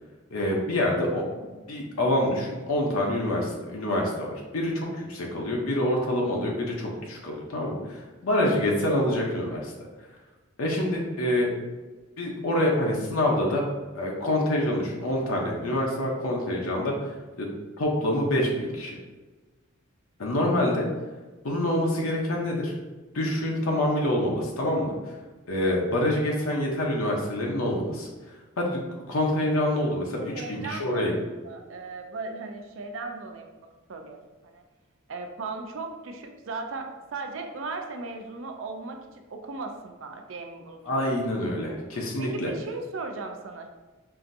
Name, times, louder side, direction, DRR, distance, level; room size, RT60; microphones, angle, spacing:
voice 1, 0.3-9.7 10.6-11.5 12.2-13.7 13.9-17.5 17.8-19.0 20.2-20.9 21.4-22.7 23.1-25.2 25.5-28.1 28.6-28.8 29.1-31.1 40.8-42.5, left 1 dB, 85° left, -1 dB, 0.7 m, -26 dB
voice 2, 30.3-31.2 31.4-34.6 35.1-41.2 42.2-43.7, right 3 dB, 65° right, 4 dB, 0.5 m, -37 dB
5.6 x 2.5 x 2.6 m, 1.2 s
head